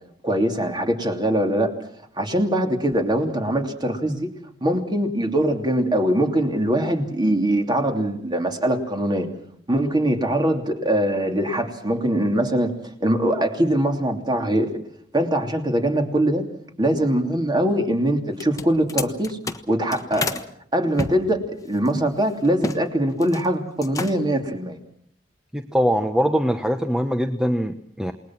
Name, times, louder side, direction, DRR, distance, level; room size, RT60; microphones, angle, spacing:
voice 1, 0.2-1.7 2.2-4.3 4.6-9.3 9.7-12.7 13.0-14.7 15.1-16.4 16.8-19.4 19.7-20.4 20.7-24.8, right 1 dB, 25° right, 4 dB, 3.1 m, -22 dB
sound 1, 18.3-20.5 21.0-22.8 23.1-23.5 23.8-24.4, left 3 dB, 20° left, 1.3 m, -30 dB
voice 2, 25.5-28.1, equal, 5° right, 7 dB, 1.0 m, -22 dB
28.5 x 20.5 x 6.1 m, 0.64 s
head